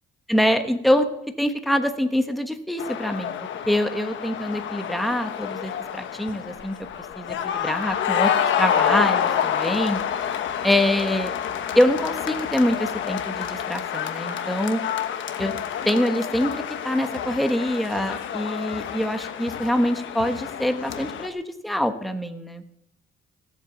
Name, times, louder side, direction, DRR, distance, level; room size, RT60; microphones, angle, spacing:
voice 1, 0.3-1.1 1.4-3.3 3.7-6.8 7.2-8.3 8.6-10.0 10.6-11.3 11.7-14.8 15.4-15.5 15.8-22.6, left 1 dB, ahead, 7 dB, 1.3 m, -24 dB
sound 1, 2.8-21.3, left 9 dB, 75° left, 1.2 m, -28 dB
17.0 x 8.2 x 6.8 m, 0.81 s
cardioid pair, 90°, 20 cm